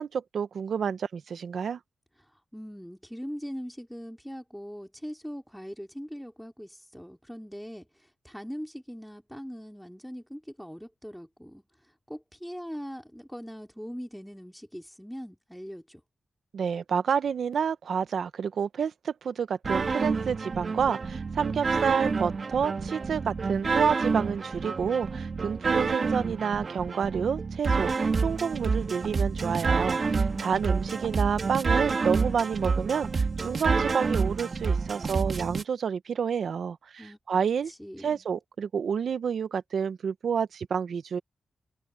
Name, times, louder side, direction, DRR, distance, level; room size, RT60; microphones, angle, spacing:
voice 1, 0.0-1.8 16.5-27.9 28.2-37.7 38.0-41.2, right 7 dB, 75° right, 1.0 m, -29 dB
voice 2, 2.2-16.0 30.3-30.9 37.0-37.2 37.6-38.2, equal, ahead, 2.7 m, -41 dB
sound 1, 19.6-35.6, right 4 dB, 45° right, 2.2 m, -28 dB
wide cardioid pair, 110°, 0 cm